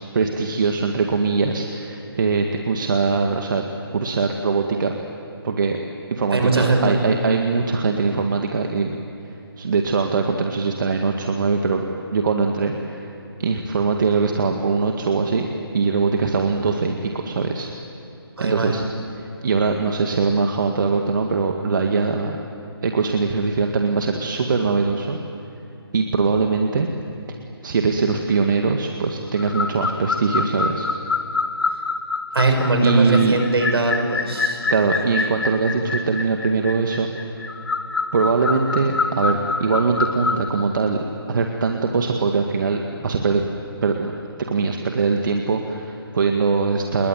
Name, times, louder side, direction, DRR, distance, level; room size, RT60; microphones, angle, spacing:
voice 1, 0.1-3.6 3.9-4.9 5.4-5.8 6.1-9.0 9.6-11.8 12.1-13.1 13.4-15.5 15.7-17.7 18.4-18.8 19.2-22.4 22.8-25.2 25.9-26.9 27.6-30.9 32.8-33.3 34.7-37.4 38.1-41.0 41.3-43.4 43.8-44.1 44.5-47.1, right 4 dB, 50° right, 3 dB, 2.0 m, -22 dB
voice 2, 6.3-7.0 18.4-18.7 32.3-34.7, right 2 dB, 75° right, 5 dB, 6.1 m, -20 dB
sound 1, 29.4-40.5, left 4 dB, 60° left, 1.8 m, -26 dB
28.0 x 21.5 x 9.3 m, 2.9 s
hypercardioid pair, 160°, 13 cm